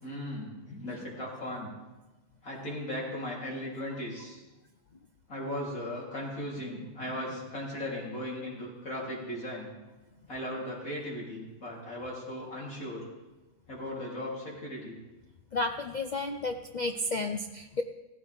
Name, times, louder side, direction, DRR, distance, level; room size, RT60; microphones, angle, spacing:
voice 1, 0.0-1.7 2.4-4.4 5.3-9.7 10.3-13.1 13.7-15.0, left 1 dB, 60° left, -4 dB, 3.8 m, -37 dB
voice 2, 15.5-17.8, left 2 dB, 90° left, 6 dB, 0.4 m, -32 dB
16.0 x 14.5 x 3.5 m, 1.1 s
omnidirectional pair, 1.6 m